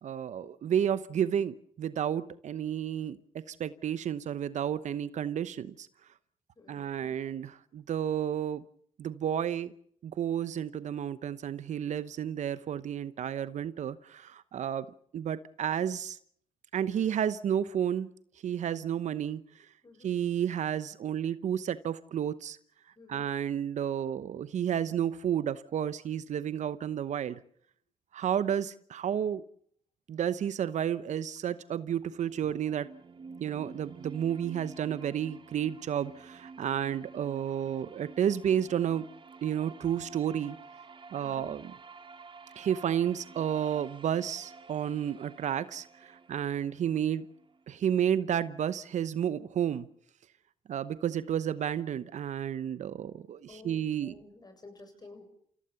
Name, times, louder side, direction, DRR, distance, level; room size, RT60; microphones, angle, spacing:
voice 1, 0.0-3.2 3.5-5.9 6.7-8.6 9.0-9.7 10.0-14.9 15.1-16.2 16.7-18.1 18.4-19.4 20.0-22.6 23.1-27.4 28.1-29.4 30.1-32.9 33.4-39.0 39.4-40.6 41.1-41.6 42.6-45.9 46.3-47.2 47.7-49.9 50.7-54.1, right 9 dB, 65° right, 15 dB, 0.9 m, -31 dB
voice 2, 6.6-7.2 19.8-20.1 23.0-23.3 41.1-41.6 53.5-55.2, left 3 dB, 30° left, 6 dB, 7.5 m, -52 dB
sound 1, 32.1-48.0, right 4 dB, 40° right, 1.7 m, -50 dB
29.0 x 16.5 x 7.0 m, 0.63 s
supercardioid pair, 55°, 13 cm